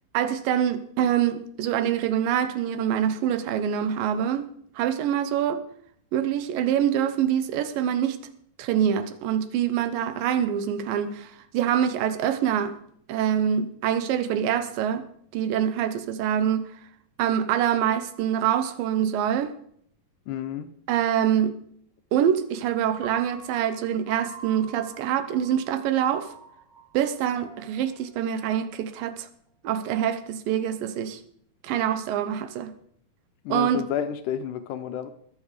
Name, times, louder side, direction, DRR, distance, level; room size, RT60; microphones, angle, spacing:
voice 1, 0.1-4.5 4.8-5.6 6.1-8.2 8.6-12.8 13.1-15.1 15.3-16.7 17.2-19.5 20.9-21.6 22.1-26.3 26.9-29.3 29.6-31.2 31.6-32.7 33.5-33.8, right 9 dB, 75° right, 2.5 m, -25 dB
voice 2, 20.3-20.7 33.5-35.1, left 9 dB, 75° left, 1.9 m, -30 dB
Piano, 23.0-29.2, right 4 dB, 45° right, 7.7 m, -47 dB
20.5 x 7.3 x 5.0 m
omnidirectional pair, 4.2 m